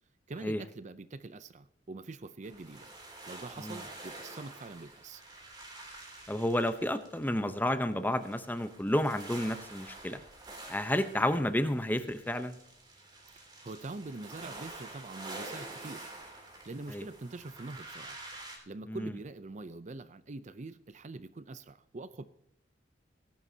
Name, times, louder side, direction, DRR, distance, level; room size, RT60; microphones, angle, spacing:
voice 1, 0.3-2.9 3.3-5.2 13.6-16.1 16.7-18.2 18.7-22.2, right 3 dB, 40° right, 13 dB, 0.5 m, -44 dB
sound 1, 2.4-18.6, right 2 dB, 20° right, 3.1 m, -48 dB
voice 2, 6.3-10.2 10.7-12.6 16.9-17.0 18.9-19.1, left 1 dB, 10° left, 10 dB, 0.8 m, -31 dB
18.5 x 11.0 x 2.8 m, 0.78 s
head